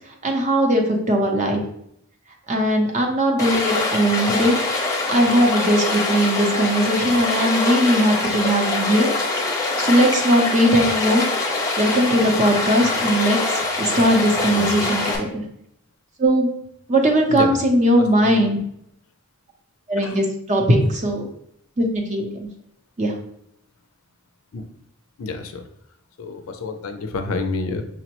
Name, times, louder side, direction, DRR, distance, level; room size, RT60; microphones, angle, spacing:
voice 1, 0.2-1.6 2.5-4.6 5.1-9.1 9.4-11.3 11.8-15.4 16.2-16.5 16.9-18.6 19.9-21.2 21.8-22.5 23.0-23.1, equal, 35° right, 2 dB, 0.6 m, -19 dB
Stream, 3.4-15.2, left 3 dB, 15° left, 0.6 m, -24 dB
voice 2, 14.4-14.7 17.3-17.6 18.0-18.6 20.0-20.2 24.5-24.6 25.2-25.7 26.2-27.8, left 3 dB, 70° left, 6 dB, 0.5 m, -29 dB
6.0 x 2.0 x 2.9 m, 0.76 s
head